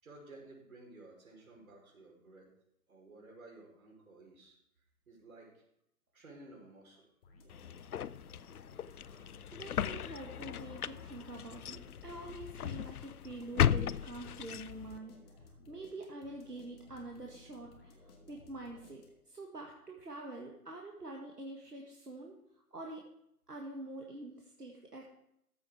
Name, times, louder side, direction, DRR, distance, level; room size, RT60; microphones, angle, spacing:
voice 1, 0.0-2.5 2.9-4.6 5.1-5.6 6.1-7.0, right 2 dB, 60° right, -1 dB, 4.7 m, -54 dB
sound 1, 7.2-19.4, left 3 dB, 40° left, 2.4 m, -59 dB
sound 2, 7.5-15.0, left 9 dB, 75° left, 0.5 m, -36 dB
voice 2, 8.9-15.2 15.7-22.4 22.7-23.1 23.5-25.0, right 2 dB, 90° right, 0 dB, 1.9 m, -46 dB
14.0 x 7.4 x 4.8 m, 0.78 s
figure-of-eight pair, 135°, 46 cm